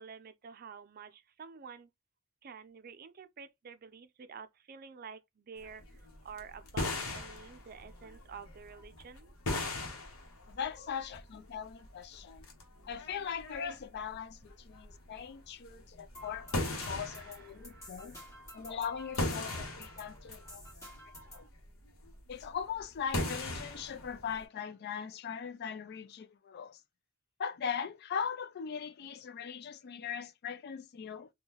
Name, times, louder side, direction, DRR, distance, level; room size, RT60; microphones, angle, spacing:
voice 1, 0.0-1.9 2.4-9.3 16.8-18.4, right 6 dB, 45° right, 0.4 m, -50 dB
sound 1, 5.6-24.4, left 2 dB, 90° left, 0.9 m, -40 dB
voice 2, 10.5-12.4 12.9-18.2 18.5-20.6 21.3-21.5 22.3-26.8 27.4-31.3, left 7 dB, 50° left, 0.3 m, -40 dB
sound 2, 16.1-21.5, equal, 15° left, 1.4 m, -51 dB
3.6 x 2.3 x 2.8 m
head